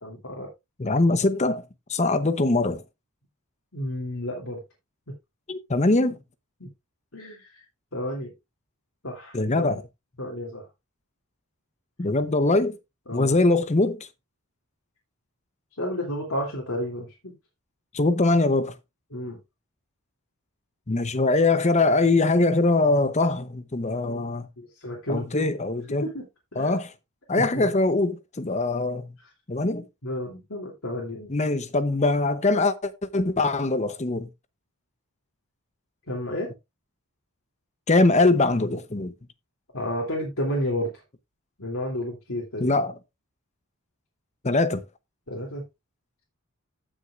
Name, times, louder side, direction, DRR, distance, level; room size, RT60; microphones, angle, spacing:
voice 1, 0.0-0.5 3.7-4.6 6.6-6.7 7.1-7.6 7.9-8.3 9.0-9.7 10.2-10.7 13.1-13.4 15.8-17.3 19.1-19.4 24.0-25.5 25.9-26.3 26.5-26.8 27.4-27.7 29.2-29.3 30.0-31.3 36.1-36.5 39.7-41.0 41.6-42.8 45.3-45.6, left 1 dB, 70° left, 2.9 m, -32 dB
voice 2, 0.8-1.6 1.9-2.8 5.5-6.2 9.3-9.8 12.0-12.8 13.1-14.1 17.9-18.7 20.9-24.5 25.1-26.1 26.6-26.9 27.3-29.1 29.5-29.8 31.3-32.7 33.1-34.3 37.9-39.1 42.6-42.9 44.4-44.8, left 2 dB, 30° left, 0.8 m, -22 dB
15.5 x 6.3 x 2.5 m
head